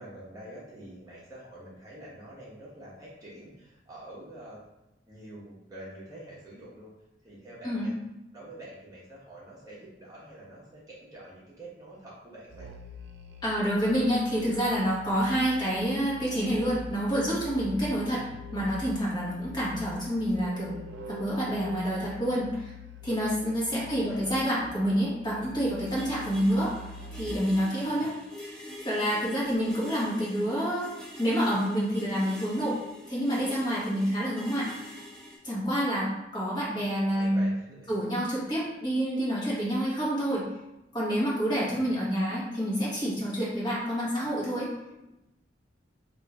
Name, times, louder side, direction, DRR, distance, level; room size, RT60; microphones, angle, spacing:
voice 1, 0.0-4.6 5.1-6.9 7.2-7.9 8.3-12.7 18.0-18.4 23.7-24.4 27.8-28.1 37.1-37.9 41.5-41.9, right 1 dB, 20° right, -7 dB, 1.0 m, -46 dB
Musical instrument, 12.5-27.5, left 3 dB, 75° right, 0.5 m, -44 dB
voice 2, 13.4-18.2 18.5-20.8 21.0-22.7 23.0-26.8 27.1-28.2 28.4-32.8 33.1-34.7 35.4-37.5 37.9-40.4 40.9-44.7, equal, 25° left, -7 dB, 1.3 m, -28 dB
sound 1, 25.9-35.4, left 1 dB, 5° left, 0.7 m, -46 dB
3.6 x 2.6 x 4.6 m, 0.92 s
head